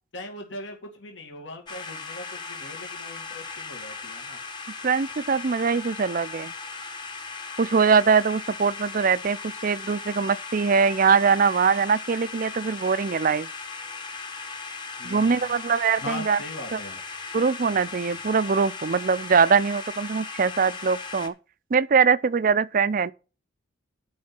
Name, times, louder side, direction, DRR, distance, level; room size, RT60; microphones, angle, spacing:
voice 1, 0.1-4.4 15.0-15.6 16.0-17.0, left 2 dB, 65° left, 2.2 m, -40 dB
sound 1, 1.7-21.3, left 4 dB, 20° left, 1.1 m, -38 dB
voice 2, 4.8-6.5 7.6-13.5 15.0-16.4 16.7-16.8 17.3-21.3 21.7-23.1, right 5 dB, 45° right, 0.4 m, -22 dB
10.5 x 5.6 x 5.8 m
head